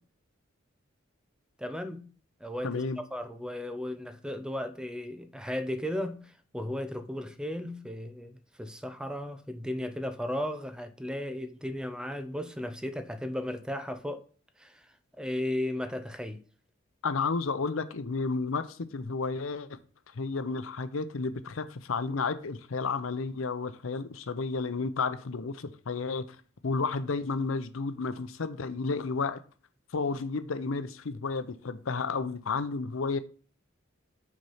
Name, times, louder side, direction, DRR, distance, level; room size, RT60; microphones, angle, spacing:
voice 1, 1.6-2.1 2.4-14.2 14.6-14.8 15.2-16.4, left 1 dB, 5° right, 0.6 m, -35 dB
voice 2, 2.6-3.0 17.0-19.8 20.2-26.2 26.6-29.4 29.9-33.2, left 4 dB, 85° left, 0.7 m, -32 dB
6.2 x 4.3 x 5.5 m
head